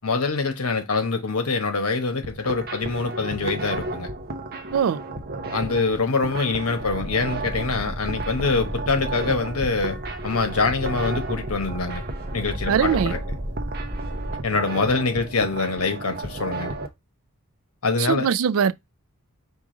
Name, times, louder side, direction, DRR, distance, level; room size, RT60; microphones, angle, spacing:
voice 1, 0.0-4.1 5.5-10.0 10.2-12.0 12.3-13.2 14.4-16.8 17.8-18.3, left 4 dB, 75° left, 1.0 m, -24 dB
sound 1, 2.2-16.9, right 2 dB, 45° right, 0.7 m, -33 dB
sound 2, 6.8-14.4, equal, 5° right, 0.7 m, -34 dB
voice 2, 12.7-13.1 18.0-18.7, right 7 dB, 70° right, 0.3 m, -21 dB
4.8 x 2.6 x 3.7 m
head